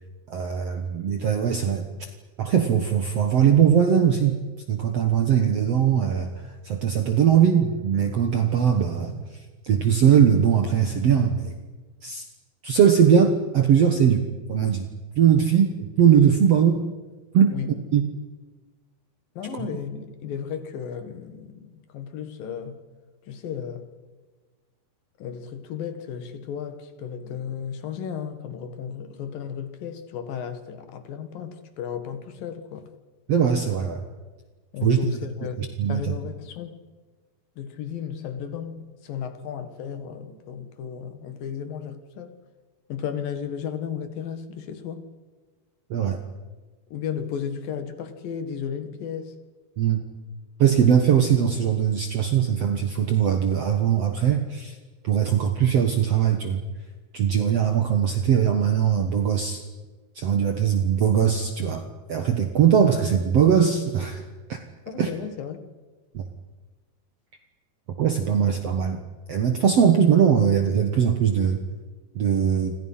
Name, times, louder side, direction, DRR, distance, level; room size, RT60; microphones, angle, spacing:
voice 1, 0.3-2.1 2.4-4.4 4.7-9.4 9.6-11.6 12.0-12.2 12.6-14.9 15.2-16.8 17.3-17.5 17.9-18.0 19.5-19.6 33.3-34.0 34.8-35.0 35.6-36.1 45.9-46.2 49.8-50.0 50.6-54.8 55.0-56.6 57.1-59.6 60.1-64.2 64.5-64.6 65.0-65.1 66.1-66.2 68.0-69.0 69.3-71.6 72.1-72.8, right 8 dB, 60° right, 1.7 m, -20 dB
voice 2, 19.4-22.8 23.3-23.9 25.2-32.9 34.7-36.8 37.6-42.3 42.9-45.1 46.9-49.3 64.9-65.7, left 7 dB, 65° left, 3.2 m, -34 dB
28.5 x 26.5 x 5.7 m
omnidirectional pair, 4.6 m